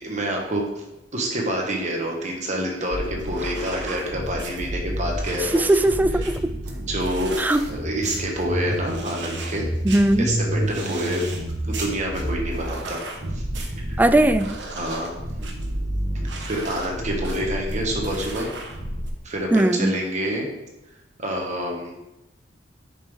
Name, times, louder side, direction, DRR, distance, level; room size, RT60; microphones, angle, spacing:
voice 1, 0.0-0.8 1.1-5.6 6.8-7.4 7.7-9.7 10.2-11.2 11.6-13.0 13.3-13.4 13.9-14.0 14.7-15.1 16.4-18.5 19.2-20.5 21.2-22.0, equal, 40° right, 0 dB, 1.3 m, -27 dB
sound 1, 2.9-19.1, right 1 dB, 70° right, 1.2 m, -30 dB
voice 2, 5.4-6.5 7.4-7.6 9.8-10.3 14.0-14.5 19.5-20.0, right 1 dB, 10° right, 10 dB, 0.3 m, -19 dB
10.5 x 5.3 x 3.6 m, 0.96 s
head